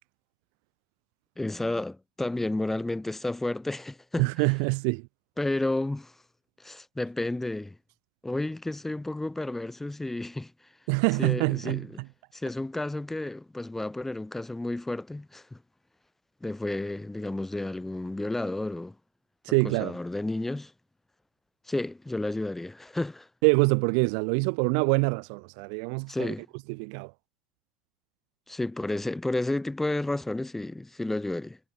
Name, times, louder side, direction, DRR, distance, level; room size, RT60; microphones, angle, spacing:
voice 1, 1.4-4.3 5.4-6.1 6.6-7.8 8.2-10.5 11.2-12.0 12.3-15.6 16.4-18.9 19.6-20.7 21.7-23.3 26.1-26.5 28.5-31.6, left 2 dB, 10° left, 2.8 m, -31 dB
voice 2, 4.2-5.1 10.9-11.9 19.4-19.9 23.4-26.3 26.7-27.1, right 40 dB or more, 65° right, 0.8 m, -25 dB
hypercardioid pair, 85°, 3 cm